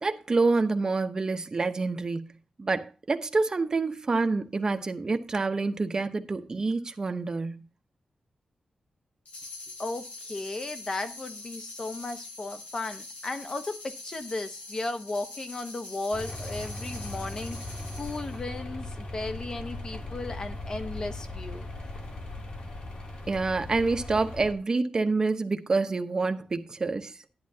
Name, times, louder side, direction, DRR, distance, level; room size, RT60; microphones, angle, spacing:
voice 1, 0.0-7.7 23.3-27.2, right 3 dB, 30° right, 0.9 m, -27 dB
sound 1, 9.2-18.4, left 2 dB, 80° left, 3.0 m, -44 dB
voice 2, 9.8-17.6 17.9-21.7, left 2 dB, 35° left, 1.0 m, -35 dB
sound 2, 16.1-24.5, left 2 dB, 55° left, 2.8 m, -38 dB
11.5 x 10.5 x 2.8 m
wide cardioid pair, 175°, 2 cm